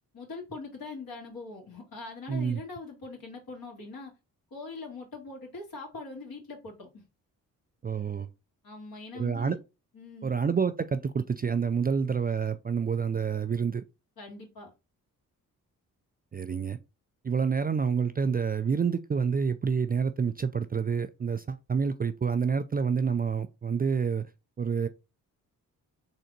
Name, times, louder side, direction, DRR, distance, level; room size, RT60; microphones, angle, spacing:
voice 1, 0.1-4.1 4.5-7.0 8.6-9.6 9.9-10.3 14.2-14.7, left 3 dB, 60° left, 2.2 m, -42 dB
voice 2, 2.3-2.6 7.8-8.3 9.1-9.6 10.2-13.8 16.3-16.8 17.2-24.3 24.6-24.9, right 6 dB, 25° right, 0.4 m, -28 dB
3.8 x 3.3 x 2.7 m
supercardioid pair, 45°, 40 cm